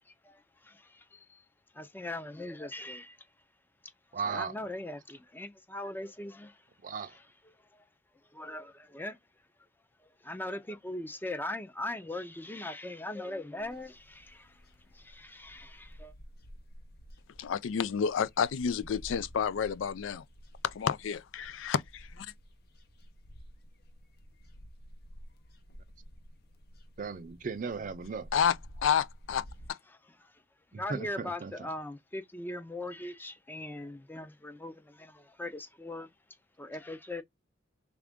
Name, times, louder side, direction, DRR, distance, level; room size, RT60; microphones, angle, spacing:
voice 1, 0.0-1.4 1.7-3.2 4.3-6.6 7.0-7.2 7.7-7.8 8.3-9.2 10.2-14.6 14.9-16.1 30.2-30.3 30.8-36.1 36.6-37.2, left 1 dB, 10° left, 0.5 m, -40 dB
voice 2, 4.1-4.5 6.8-7.2 27.0-28.3 30.7-31.7, right 5 dB, 45° right, 0.5 m, -36 dB
sound 1, 13.6-29.7, equal, 55° left, 0.7 m, -52 dB
voice 3, 17.4-20.2 20.6-22.3 28.3-29.8, left 7 dB, 85° left, 0.4 m, -30 dB
3.4 x 2.5 x 3.5 m
head